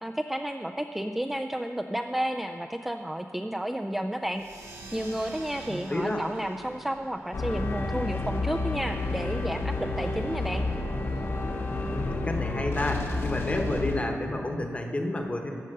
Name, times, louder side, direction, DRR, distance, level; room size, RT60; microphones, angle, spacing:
voice 1, 0.0-4.4 4.9-10.7, right 1 dB, 5° right, 5 dB, 0.3 m, -31 dB
sound 1, 4.3-9.4, right 2 dB, 85° right, 1.8 m, -48 dB
voice 2, 5.7-6.2 11.9-15.5, left 1 dB, 25° left, 3 dB, 1.1 m, -30 dB
sound 2, 7.3-14.0, left 3 dB, 50° left, 1.0 m, -30 dB
14.0 x 5.3 x 6.6 m, 2.4 s
wide cardioid pair, 110°, 5 cm